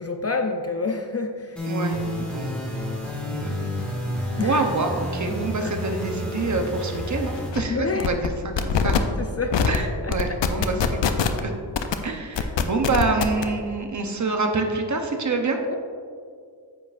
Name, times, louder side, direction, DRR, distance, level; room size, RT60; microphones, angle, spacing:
voice 1, 0.0-1.6 4.4-4.7 5.6-5.7 7.7-8.1 8.8-9.6 10.0-10.1 15.6-15.7, left 4 dB, 35° left, 4 dB, 0.5 m, -28 dB
sound 1, 1.6-7.5, left 1 dB, ahead, 1.9 m, -30 dB
voice 2, 1.7-2.5 3.3-3.5 4.4-8.9 9.7-11.6 12.0-15.6, right 3 dB, 40° right, 4 dB, 0.8 m, -26 dB
sound 2, 6.9-7.0 7.3-7.6 8.0-8.3 8.6-9.0 9.5-9.8 10.1-11.4 11.7-11.9 12.4-13.4, left 7 dB, 75° left, 0.6 m, -22 dB
9.4 x 7.8 x 2.5 m, 2.2 s
wide cardioid pair, 145°, 43 cm